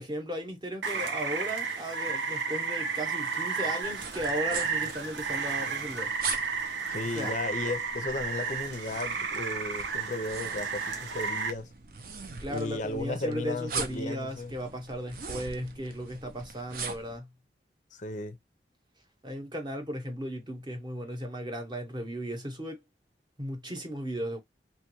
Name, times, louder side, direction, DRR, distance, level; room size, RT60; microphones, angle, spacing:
voice 1, 0.0-6.1 7.1-7.3 12.4-17.3 19.2-22.8 23.4-24.4, equal, 25° right, 0.8 m, -36 dB
Rain, 0.8-11.5, right 5 dB, 85° right, 0.8 m, -32 dB
sound 1, 3.8-17.2, right 5 dB, 55° right, 0.6 m, -41 dB
voice 2, 6.9-11.7 12.5-14.5 17.9-18.4, left 2 dB, 45° left, 0.5 m, -35 dB
3.0 x 2.2 x 3.0 m
head